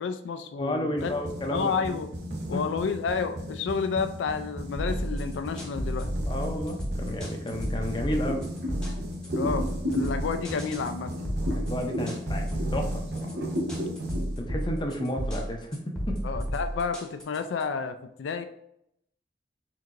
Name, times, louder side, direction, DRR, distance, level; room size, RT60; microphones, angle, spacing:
voice 1, 0.0-1.1 1.4-2.1 2.5-6.1 9.3-9.7 9.9-11.1 16.2-18.4, left 5 dB, 80° left, 8 dB, 0.3 m, -30 dB
voice 2, 0.6-2.0 2.5-2.7 6.3-8.5 11.5-13.3 14.4-16.3, left 1 dB, 25° left, 3 dB, 0.5 m, -32 dB
sound 1, 1.0-14.9, equal, 60° right, 0.8 m, -37 dB
sound 2, 4.8-17.6, equal, 5° left, 0.9 m, -32 dB
sound 3, 8.3-12.9 13.2-15.1, equal, 85° right, 1.4 m, -34 dB
4.5 x 3.6 x 2.5 m, 0.76 s
head